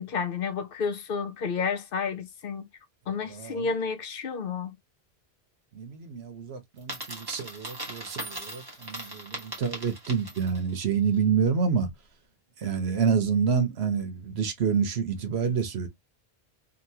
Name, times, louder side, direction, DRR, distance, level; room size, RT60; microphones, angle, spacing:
voice 1, 0.0-2.7 3.1-4.8, left 5 dB, 65° left, 0.8 m, -31 dB
voice 2, 3.3-3.7 5.7-11.9 12.6-15.9, right 6 dB, 90° right, 1.1 m, -28 dB
Coin (dropping), 6.8-10.7, right 1 dB, 20° right, 1.2 m, -39 dB
2.9 x 2.7 x 2.7 m
omnidirectional pair, 1.0 m